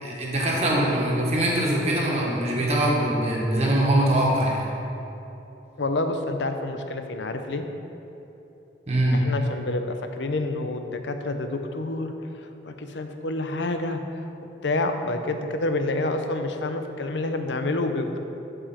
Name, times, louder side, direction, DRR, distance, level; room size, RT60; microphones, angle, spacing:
voice 1, 0.0-4.7 8.9-9.2, right 1 dB, 35° right, -3 dB, 1.5 m, -23 dB
voice 2, 5.8-7.7 9.1-14.2 14.6-18.2, left 2 dB, 80° left, 6 dB, 0.7 m, -28 dB
12.5 x 4.9 x 4.4 m, 3.0 s
head